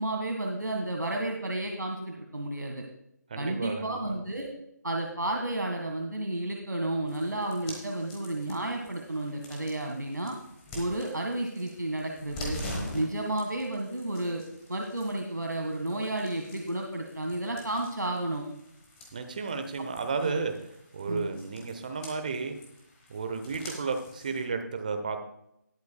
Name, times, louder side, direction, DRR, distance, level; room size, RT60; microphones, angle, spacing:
voice 1, 0.0-2.8 3.4-4.5 4.8-10.4 10.8-12.6 12.9-14.4 14.7-18.5 20.2-20.4 21.1-21.3, right 1 dB, 75° right, 1 dB, 1.8 m, -32 dB
voice 2, 3.3-4.1 19.1-20.5 20.9-22.5 23.1-25.2, right 4 dB, 25° right, 6 dB, 1.0 m, -33 dB
sound 1, 7.1-24.5, left 1 dB, 10° left, 1.2 m, -45 dB
19.5 x 8.1 x 2.3 m, 0.79 s
figure-of-eight pair, 160°, 10 cm